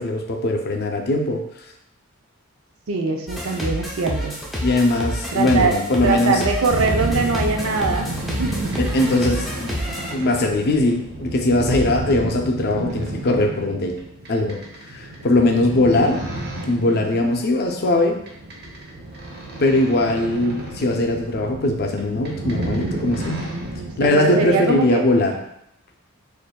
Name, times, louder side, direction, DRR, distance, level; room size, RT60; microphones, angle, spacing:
voice 1, 0.0-1.4 4.6-6.4 8.8-9.8 10.1-14.0 14.3-14.6 14.9-16.2 16.7-18.2 19.6-23.5 24.0-25.4, left 2 dB, 50° left, 3 dB, 0.5 m, -20 dB
voice 2, 2.9-4.4 5.3-5.8 6.0-8.1 8.4-8.8 12.7-13.0 23.7-25.0, right 4 dB, 70° right, 3 dB, 0.5 m, -22 dB
sound 1, 3.3-10.1, equal, ahead, 0.5 m, -29 dB
sound 2, 6.7-24.1, right 1 dB, 45° right, 0.8 m, -31 dB
6.6 x 2.5 x 2.2 m, 0.79 s
head